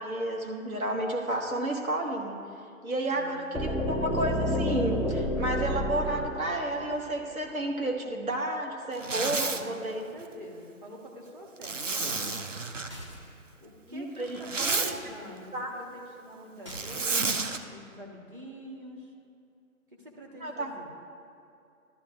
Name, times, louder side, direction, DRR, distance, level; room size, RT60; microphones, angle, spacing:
voice 1, 0.0-2.4 2.8-10.0 13.9-15.0 15.5-15.7 20.4-20.7, right 1 dB, 80° right, 1 dB, 1.8 m, -31 dB
voice 2, 3.1-4.0 9.3-12.4 13.6-19.1 19.9-20.9, equal, 40° right, -1 dB, 1.6 m, -46 dB
sound 1, 3.5-7.4, equal, ahead, 0.4 m, -30 dB
Zipper (clothing), 8.9-9.6 11.6-12.9 14.2-14.9 16.7-17.6, right 4 dB, 60° right, 0.8 m, -30 dB
sound 2, 12.9-13.4 14.6-14.9 16.6-17.1, equal, 20° right, 0.9 m, -45 dB
13.5 x 12.5 x 2.5 m, 2.5 s
hypercardioid pair, 175°, 42 cm